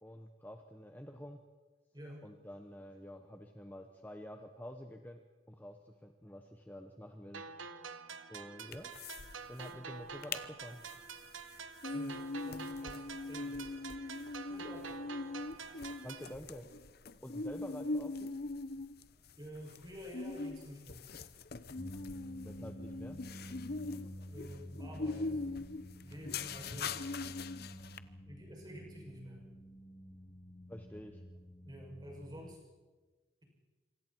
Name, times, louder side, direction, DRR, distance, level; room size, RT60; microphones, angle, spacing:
voice 1, 0.0-1.4 2.2-5.2 5.5-7.5 8.3-8.9 9.5-10.8 12.9-13.0 16.0-16.7 17.2-18.3 21.7-22.0 22.4-23.2 23.8-24.3 28.1-28.2 30.7-31.2, equal, 10° left, 4 dB, 1.0 m, -49 dB
sound 1, 7.3-16.3, right 5 dB, 90° right, 1.2 m, -47 dB
sound 2, 8.7-9.3 9.6-9.7 10.0-10.4 10.9-28.0, left 3 dB, 50° left, 0.8 m, -41 dB
voice 2, 11.9-13.6 14.5-14.9 19.4-21.0 24.3-25.4 26.0-27.1 28.3-29.4 31.6-32.6, equal, 20° right, -2 dB, 7.3 m, -49 dB
sound 3, 21.8-32.6, equal, 25° left, 2.4 m, -50 dB
27.0 x 25.5 x 4.6 m, 1.3 s
head